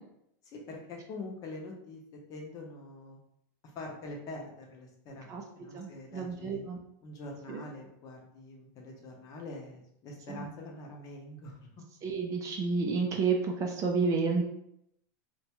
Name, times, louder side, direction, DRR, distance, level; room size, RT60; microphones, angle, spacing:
voice 1, 0.4-3.2 3.7-6.6 7.0-11.7, left 2 dB, 35° left, 0 dB, 0.7 m, -44 dB
voice 2, 5.7-6.8 7.5-7.6 10.3-10.5 12.0-14.4, right 4 dB, 30° right, 2 dB, 0.4 m, -30 dB
2.5 x 2.2 x 2.9 m, 0.76 s
supercardioid pair, 135°, 11 cm